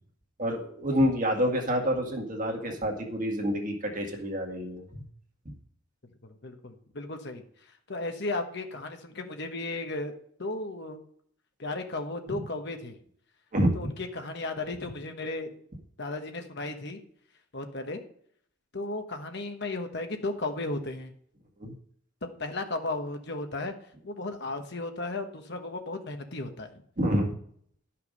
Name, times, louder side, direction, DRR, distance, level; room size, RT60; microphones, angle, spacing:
voice 1, 0.4-5.0 5.5-5.6 12.3-12.4 13.5-13.9 21.6-21.7 27.0-27.3, equal, 40° right, 1 dB, 1.9 m, -28 dB
voice 2, 6.2-7.4 7.9-11.0 11.6-13.0 13.7-15.5 16.0-17.0 17.5-18.0 18.7-21.1 22.4-23.7 24.0-26.8, left 2 dB, 55° left, 5 dB, 1.2 m, -35 dB
12.0 x 5.8 x 5.3 m, 0.63 s
head